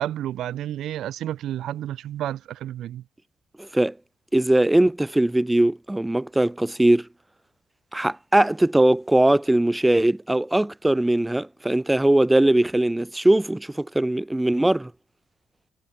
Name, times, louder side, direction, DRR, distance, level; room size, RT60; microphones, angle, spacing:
voice 1, 0.0-3.0, right 12 dB, 75° right, 1.0 m, -30 dB
voice 2, 3.6-3.9 4.3-7.1 7.9-14.9, right 1 dB, 10° right, 2.1 m, -20 dB
cardioid pair, 90°, 0 cm